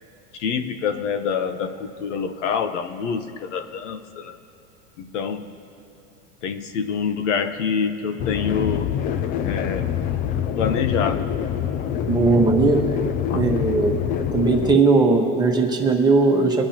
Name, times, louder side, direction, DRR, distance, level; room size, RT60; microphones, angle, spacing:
voice 1, 0.3-4.4 5.0-5.6 6.4-8.9 9.4-9.9 10.6-11.3 13.3-13.5, left 6 dB, 85° left, 8 dB, 1.0 m, -26 dB
sound 1, 8.2-14.8, left 9 dB, 25° left, 0.3 m, -25 dB
voice 2, 12.1-12.8 13.3-14.0 14.3-16.6, right 3 dB, 10° right, 0 dB, 1.4 m, -18 dB
23.5 x 9.9 x 2.9 m, 2.9 s
supercardioid pair, 140°, 35 cm